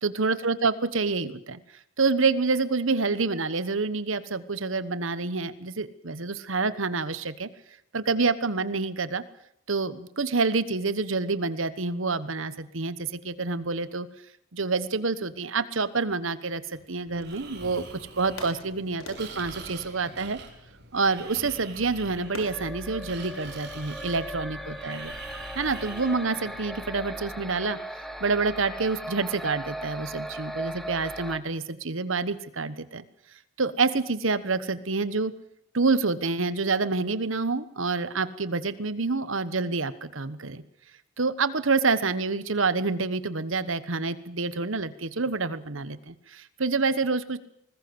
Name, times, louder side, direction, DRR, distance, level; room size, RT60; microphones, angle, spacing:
voice 1, 0.0-1.6 2.0-7.5 7.9-9.2 9.7-14.1 14.5-17.9 18.2-20.4 20.9-25.1 25.5-27.8 28.2-33.0 33.6-35.3 35.7-40.6 41.2-47.4, right 4 dB, 75° right, 15 dB, 1.2 m, -27 dB
sound 1, 16.7-17.8 18.4-20.9 22.3-22.8, left 2 dB, 80° left, 5.4 m, -45 dB
Breathing, 17.1-26.8, right 4 dB, 55° right, 4.1 m, -45 dB
sound 2, 21.9-31.4, right 1 dB, ahead, 1.3 m, -38 dB
21.0 x 20.0 x 7.9 m, 0.73 s
head